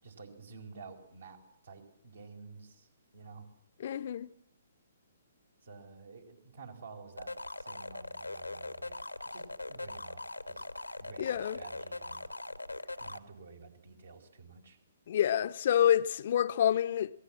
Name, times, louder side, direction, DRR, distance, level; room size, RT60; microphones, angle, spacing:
voice 1, 0.0-2.9 3.1-3.5 5.6-9.0 9.2-10.6 11.0-12.3 13.0-14.8, right 4 dB, 65° right, 4.6 m, -51 dB
voice 2, 3.8-4.3 11.2-11.6 15.1-17.1, left 10 dB, 50° left, 0.8 m, -28 dB
sound 1, 7.2-13.2, left 2 dB, 90° left, 1.4 m, -41 dB
27.0 x 19.0 x 7.6 m
figure-of-eight pair, 125°, 0 cm